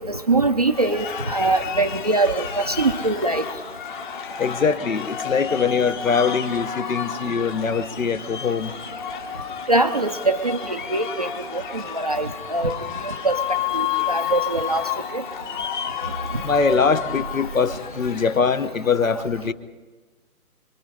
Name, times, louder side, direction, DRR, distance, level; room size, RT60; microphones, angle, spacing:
voice 1, 0.1-3.4 9.7-12.7 13.0-13.4 13.7-14.8 15.1-15.2, right 2 dB, 25° right, 7 dB, 0.6 m, -23 dB
sound 1, 0.7-18.7, left 8 dB, 30° left, 1.8 m, -31 dB
voice 2, 4.4-8.7 16.4-19.5, left 5 dB, 60° left, 14 dB, 1.3 m, -22 dB
27.5 x 23.0 x 5.0 m, 1.3 s
figure-of-eight pair, 140°, 45 cm